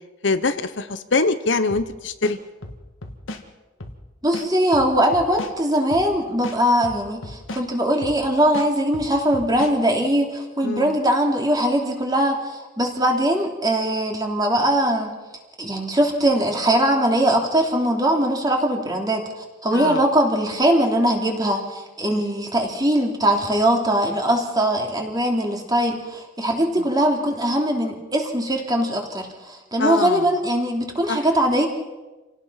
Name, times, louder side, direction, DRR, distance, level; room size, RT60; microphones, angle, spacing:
voice 1, 0.2-2.4 10.6-10.9 19.7-20.0 22.1-22.2 29.8-30.2 31.1-31.2, left 3 dB, 65° left, 11 dB, 1.0 m, -23 dB
sound 1, 1.7-1.9 2.2-3.4 3.8-4.0 4.3-5.5 5.9-6.1 6.4-7.6 8.0-8.2 8.5-9.7, left 1 dB, 80° left, 2.0 m, -35 dB
voice 2, 4.2-15.2 15.6-19.3 19.6-31.7, right 1 dB, 20° right, 1 dB, 3.1 m, -21 dB
27.5 x 17.5 x 5.8 m, 1.2 s
head